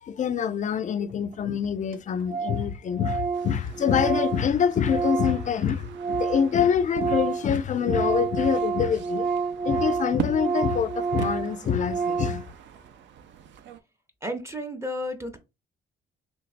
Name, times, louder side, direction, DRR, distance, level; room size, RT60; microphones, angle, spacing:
voice 1, 0.0-9.3 9.6-12.4, left 7 dB, 40° left, 0.4 m, -25 dB
Organ, 1.3-1.4 1.6-1.7 1.9-2.0 2.3-2.7 2.9-6.5 6.8-12.5, right 5 dB, 45° right, 0.8 m, -29 dB
sound 1, 3.3-13.8, right 8 dB, 65° right, 0.5 m, -42 dB
voice 2, 14.2-15.4, left 1 dB, 15° right, 0.6 m, -32 dB
3.2 x 3.1 x 2.5 m
cardioid pair, 90°, 20 cm